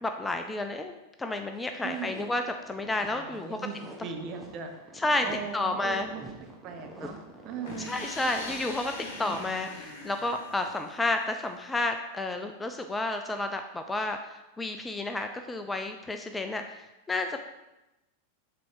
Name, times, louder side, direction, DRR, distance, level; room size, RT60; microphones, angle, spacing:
voice 1, 0.0-3.6 5.0-5.3 5.5-6.1 7.9-14.2 14.6-17.4, left 2 dB, 10° left, 6 dB, 0.4 m, -31 dB
sound 1, 1.6-10.2, right 1 dB, 10° right, 1.0 m, -48 dB
voice 2, 1.8-2.3 3.1-7.2 7.4-8.0, right 6 dB, 40° right, 4 dB, 0.9 m, -39 dB
sound 2, 7.6-11.4, left 3 dB, 50° left, 1.4 m, -42 dB
6.8 x 4.2 x 4.8 m, 0.98 s
figure-of-eight pair, 90°, 0 cm